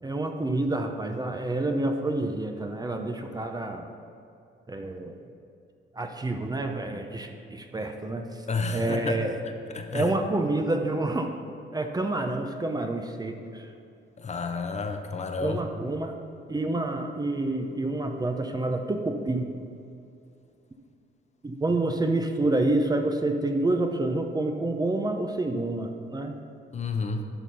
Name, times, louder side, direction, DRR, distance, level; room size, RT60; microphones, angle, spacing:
voice 1, 0.0-3.9 4.7-5.2 5.9-8.4 8.7-9.4 9.9-11.3 11.7-13.7 15.4-16.1 16.5-19.5 21.4-26.3, right 2 dB, 20° right, 4 dB, 0.7 m, -28 dB
voice 2, 8.5-9.2 9.7-10.1 14.2-15.6 26.7-27.2, left 4 dB, 35° left, 5 dB, 0.8 m, -30 dB
11.0 x 4.3 x 5.4 m, 2.6 s
cardioid pair, 90°, 20 cm